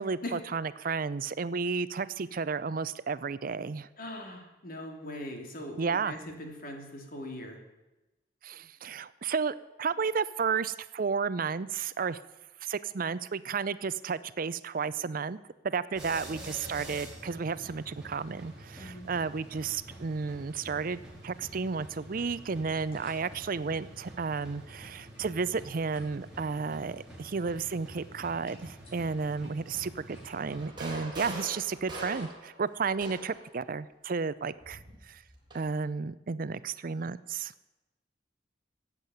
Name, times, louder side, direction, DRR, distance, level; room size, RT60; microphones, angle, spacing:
voice 1, 0.0-3.9 5.8-6.1 8.4-12.2 12.6-15.4 15.6-35.2 35.5-37.5, right 5 dB, 50° right, 16 dB, 0.5 m, -32 dB
voice 2, 4.0-7.6 16.3-16.5 18.8-19.1, left 1 dB, 50° left, 3 dB, 2.9 m, -41 dB
sound 1, 15.9-31.3, right 1 dB, 5° right, 4.2 m, -47 dB
sound 2, 21.8-21.9 22.7-23.3 24.9-25.5 25.9-26.3 27.0-27.6 28.0-32.3, left 1 dB, 35° left, 5.1 m, -59 dB
sound 3, 30.6-33.5 34.6-35.7, right 2 dB, 25° right, 3.8 m, -42 dB
16.5 x 8.4 x 9.4 m, 1.0 s
head